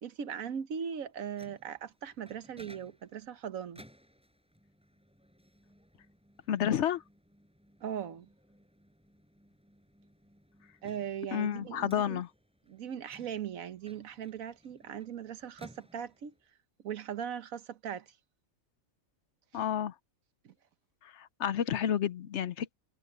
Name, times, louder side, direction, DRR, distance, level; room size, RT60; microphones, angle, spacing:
voice 1, 0.0-3.8 7.8-8.3 10.8-12.2 12.7-16.3 16.8-18.1 20.4-20.5, right 8 dB, 85° right, 1.4 m, -39 dB
Microwave oven, 1.0-16.5, equal, 5° right, 6.2 m, -60 dB
voice 2, 6.5-7.0 11.3-12.3 19.5-19.9 21.1-22.7, left 9 dB, 65° left, 0.9 m, -30 dB
omnidirectional pair, 1.4 m